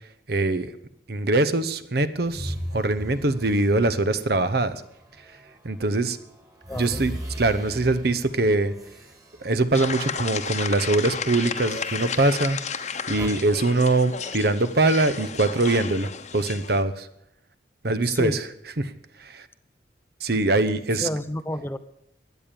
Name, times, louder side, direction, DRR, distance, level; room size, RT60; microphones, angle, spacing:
voice 1, 0.3-0.8 1.1-4.8 5.3-5.4 5.6-6.2 6.7-7.1 7.4-8.7 9.4-12.6 13.1-17.1 17.8-18.5 18.8-18.9 19.2-19.5 20.2-21.1, right 2 dB, 60° right, 13 dB, 0.9 m, -23 dB
sound 1, 2.2-5.6 6.0-10.3 10.6-10.9 11.7-13.3, equal, 20° right, 2.2 m, -39 dB
voice 2, 6.7-7.0 18.1-18.4 21.0-21.8, left 1 dB, 15° left, 12 dB, 0.6 m, -30 dB
sound 2, 9.7-16.8, left 6 dB, 40° left, 1.0 m, -33 dB
16.5 x 10.5 x 6.9 m, 0.78 s
head